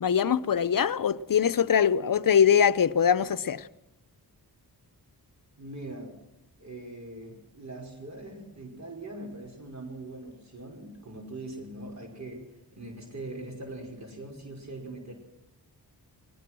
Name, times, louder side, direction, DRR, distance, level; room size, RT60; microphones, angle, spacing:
voice 1, 0.0-3.7, left 8 dB, 55° left, 0.8 m, -23 dB
voice 2, 5.6-6.2 6.6-15.1, right 2 dB, 45° right, 5.5 m, -41 dB
21.5 x 20.0 x 6.2 m
wide cardioid pair, 80°, 39 cm